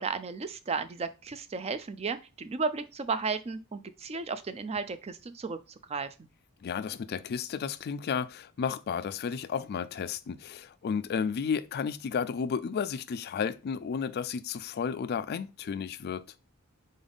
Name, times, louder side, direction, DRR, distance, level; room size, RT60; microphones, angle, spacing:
voice 1, 0.0-5.6 5.9-6.1, right 4 dB, 30° right, 0.4 m, -34 dB
voice 2, 6.6-16.3, left 6 dB, 45° left, 0.3 m, -32 dB
4.0 x 3.5 x 3.8 m
head